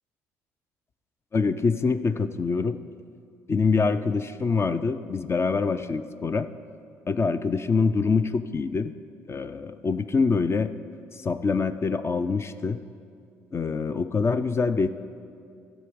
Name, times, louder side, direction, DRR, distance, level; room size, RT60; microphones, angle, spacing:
voice 1, 1.3-2.8 3.5-6.5 7.1-8.9 9.3-10.7 11.1-12.8 13.5-14.9, left 4 dB, 35° left, 11 dB, 0.4 m, -25 dB
12.5 x 7.1 x 5.0 m, 2.3 s
hypercardioid pair, 55°, 8 cm